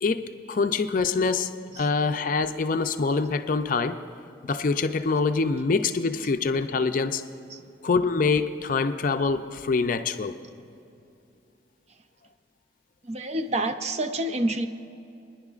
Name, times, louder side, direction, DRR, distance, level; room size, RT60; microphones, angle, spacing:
voice 1, 0.0-1.5 1.8-4.0 4.4-7.2 7.8-10.3, left 4 dB, 45° left, 9 dB, 0.4 m, -25 dB
voice 2, 13.0-14.7, right 1 dB, 35° right, 9 dB, 0.5 m, -28 dB
26.5 x 10.5 x 2.4 m, 2.6 s
head